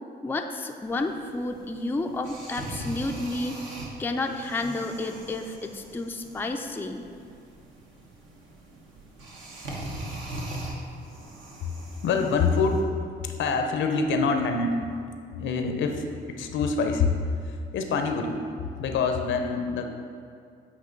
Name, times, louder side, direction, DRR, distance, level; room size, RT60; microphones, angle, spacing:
voice 1, 0.2-3.6 4.0-7.1, left 2 dB, 10° left, 4 dB, 0.4 m, -31 dB
sound 1, 0.8-12.8, right 1 dB, 75° right, 1.2 m, -41 dB
voice 2, 12.0-14.8 15.3-17.1 17.4-18.4 18.8-19.8, left 4 dB, 75° left, 5 dB, 0.7 m, -26 dB
8.3 x 3.0 x 5.2 m, 2.4 s
cardioid pair, 90°, 20 cm